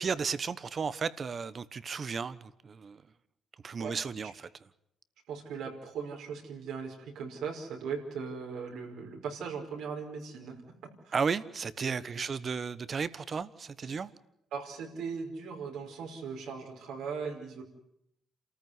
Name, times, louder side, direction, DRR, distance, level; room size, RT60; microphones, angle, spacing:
voice 1, 0.0-3.0 3.6-4.5 11.1-14.1, right 5 dB, 45° right, 1.1 m, -34 dB
voice 2, 5.3-10.6 11.1-11.2 11.8-12.3 14.5-17.6, right 6 dB, 80° right, 5.2 m, -39 dB
27.5 x 14.5 x 9.7 m
cardioid pair, 90°, 0 cm